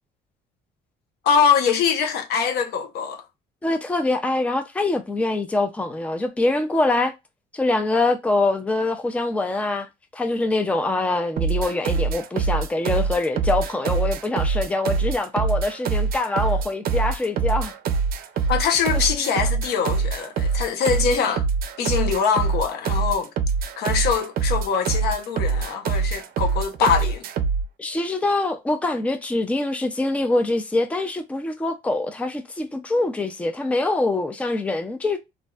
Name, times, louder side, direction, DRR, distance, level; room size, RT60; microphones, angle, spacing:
voice 1, 1.2-3.2 18.5-21.5 21.8-23.3 23.8-27.2, left 6 dB, 70° left, 0.8 m, -23 dB
voice 2, 3.6-7.1 7.5-9.9 10.1-17.7 18.9-19.3 27.0-27.1 27.8-35.2, left 2 dB, 10° left, 0.5 m, -24 dB
sound 1, 11.4-27.7, right 5 dB, 60° right, 0.5 m, -24 dB
3.0 x 2.6 x 2.2 m
cardioid pair, 110°, 17 cm